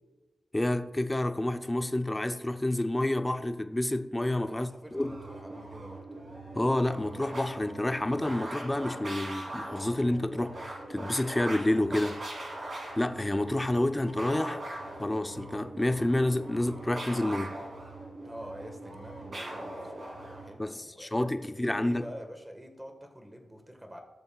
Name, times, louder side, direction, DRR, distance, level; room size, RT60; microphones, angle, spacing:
voice 1, 0.5-5.1 6.5-12.2 13.0-14.6 15.0-17.6 20.6-22.0, left 1 dB, 15° left, 0.5 m, -29 dB
voice 2, 4.4-6.0 18.2-24.0, equal, 10° right, 1.4 m, -47 dB
sound 1, 4.9-20.5, right 1 dB, 50° right, 2.9 m, -41 dB
16.5 x 6.9 x 2.3 m
cardioid pair, 85°, 0 cm